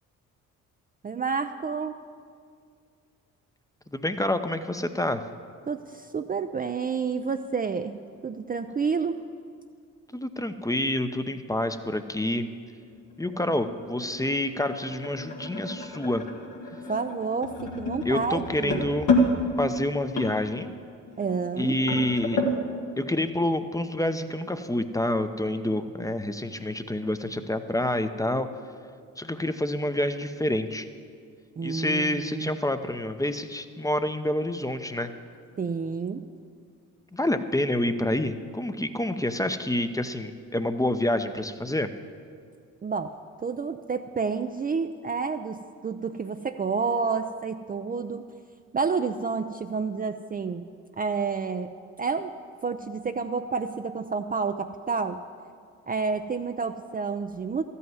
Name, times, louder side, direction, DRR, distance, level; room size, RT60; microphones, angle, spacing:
voice 1, 1.0-2.0 5.7-9.2 13.3-13.4 16.9-18.8 21.2-21.8 31.6-32.5 35.6-36.2 42.8-43.2 43.4-48.3 48.7-50.6 51.0-51.7 52.0-52.3 52.6-55.2 55.9-57.6, right 5 dB, 25° right, 7 dB, 0.5 m, -29 dB
voice 2, 3.9-5.2 10.1-12.5 13.2-16.2 18.0-19.1 19.6-20.7 21.6-22.4 23.0-28.5 29.2-30.9 31.6-35.1 37.1-41.9, left 1 dB, 10° left, 9 dB, 0.7 m, -28 dB
sound 1, 12.8-22.6, left 1 dB, 80° left, 1.8 m, -30 dB
13.0 x 5.6 x 9.3 m, 2.2 s
supercardioid pair, 55°, 34 cm